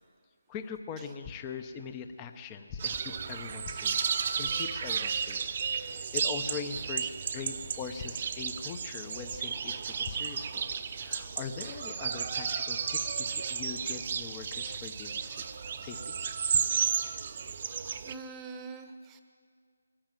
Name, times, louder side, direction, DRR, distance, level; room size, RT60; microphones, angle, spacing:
voice 1, 0.5-4.0 4.4-5.4 5.7-10.7 10.9-15.4 15.8-16.1, left 6 dB, 15° left, 8 dB, 0.8 m, -41 dB
sound 1, 2.8-18.1, right 6 dB, 35° right, 0.8 m, -33 dB
voice 2, 18.0-19.2, right 4 dB, 10° right, 7 dB, 1.0 m, -44 dB
23.0 x 15.0 x 9.1 m, 2.1 s
figure-of-eight pair, 170°, 0 cm